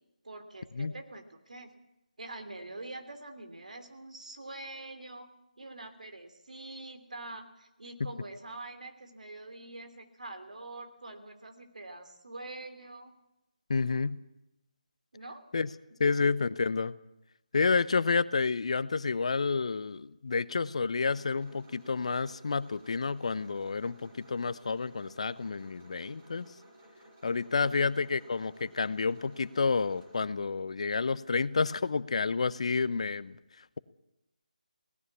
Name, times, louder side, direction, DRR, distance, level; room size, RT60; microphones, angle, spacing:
voice 1, 0.2-1.7 2.2-5.3 5.6-13.1 15.1-15.4 16.1-16.2 27.6-28.0, right 2 dB, 65° right, 7 dB, 3.2 m, -45 dB
voice 2, 13.7-14.2 15.5-15.7 16.0-16.9 17.5-26.5 27.2-33.4, left 4 dB, 50° left, 17 dB, 0.7 m, -29 dB
sound 1, 21.0-30.2, right 1 dB, 20° right, 4.8 m, -56 dB
18.0 x 17.0 x 8.5 m, 0.89 s
figure-of-eight pair, 160°, 4 cm